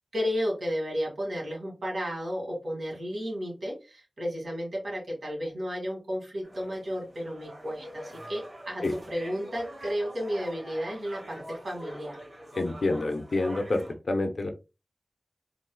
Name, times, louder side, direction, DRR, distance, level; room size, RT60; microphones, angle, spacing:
voice 1, 0.1-12.2, equal, 85° right, -2 dB, 1.8 m, -33 dB
sound 1, 6.4-13.9, equal, 55° right, 1.7 m, -44 dB
voice 2, 12.5-14.5, left 2 dB, 75° left, 4 dB, 0.6 m, -28 dB
3.9 x 2.5 x 2.2 m, 0.29 s
wide cardioid pair, 75°, 0 cm